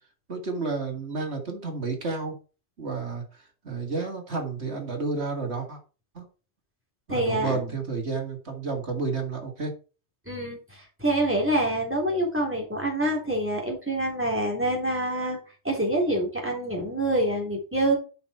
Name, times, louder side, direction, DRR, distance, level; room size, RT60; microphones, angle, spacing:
voice 1, 0.3-2.4 2.8-3.2 3.6-5.8 6.1-6.2 7.1-9.7, right 4 dB, 60° right, 2 dB, 2.5 m, -31 dB
voice 2, 7.1-7.7 10.3-15.4 15.6-18.0, right 1 dB, 10° right, 0 dB, 3.6 m, -26 dB
8.4 x 6.1 x 4.5 m, 0.34 s
omnidirectional pair, 1.3 m